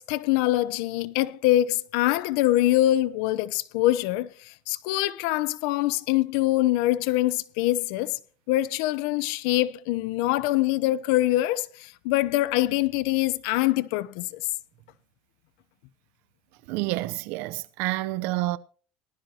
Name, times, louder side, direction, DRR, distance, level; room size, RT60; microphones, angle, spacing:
voice 1, 0.0-8.2 8.5-14.3, left 15 dB, 90° left, 0.8 m, -24 dB
voice 2, 16.7-18.6, right 18 dB, 80° right, 0.8 m, -28 dB
19.0 x 12.0 x 2.9 m
cardioid pair, 115°, 3 cm